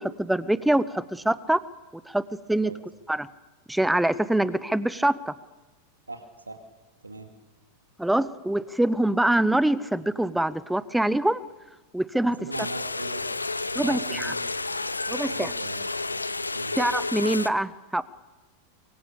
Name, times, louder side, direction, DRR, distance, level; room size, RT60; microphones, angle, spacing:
voice 1, 0.0-1.6 2.1-2.2 2.5-2.7 3.1-3.3 3.7-5.3 8.0-11.4 11.9-12.4 13.7-14.3 15.1-15.5 16.8-18.0, right 1 dB, 5° right, 18 dB, 0.9 m, -24 dB
voice 2, 6.1-6.6 7.0-7.3 12.2-13.2 13.7-14.4 15.2-15.8 16.1-16.2 16.5-16.8, right 2 dB, 80° right, 6 dB, 2.3 m, -39 dB
sound 1, 12.5-17.5, left 3 dB, 80° left, 0.8 m, -31 dB
24.5 x 24.0 x 6.8 m, 1.1 s
figure-of-eight pair, 90°, 0 cm